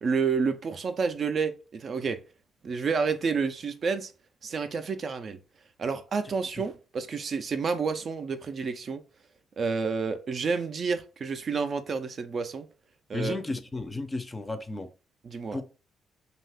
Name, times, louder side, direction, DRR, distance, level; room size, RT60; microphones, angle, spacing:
voice 1, 0.0-2.2 2.6-4.1 4.4-5.4 5.8-9.0 9.6-12.7 13.1-13.4 15.2-15.6, right 5 dB, 50° right, 0.3 m, -29 dB
voice 2, 13.1-14.9 15.5-15.6, left 3 dB, 20° left, 0.5 m, -33 dB
2.7 x 2.3 x 3.4 m
cardioid pair, 90°, 0 cm